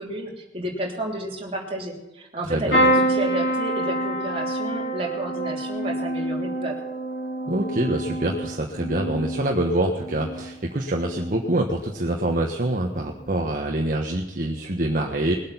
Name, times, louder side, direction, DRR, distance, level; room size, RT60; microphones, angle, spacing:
voice 1, 0.0-6.7, right 1 dB, 30° right, -1 dB, 3.2 m, -31 dB
voice 2, 2.5-2.8 7.5-15.3, right 1 dB, 50° right, 1 dB, 1.3 m, -25 dB
sound 1, 2.7-10.5 11.0-11.5 12.8-13.0 13.2-13.3, right 1 dB, 85° left, 5.3 m, -26 dB
21.0 x 8.6 x 5.7 m, 1.0 s
head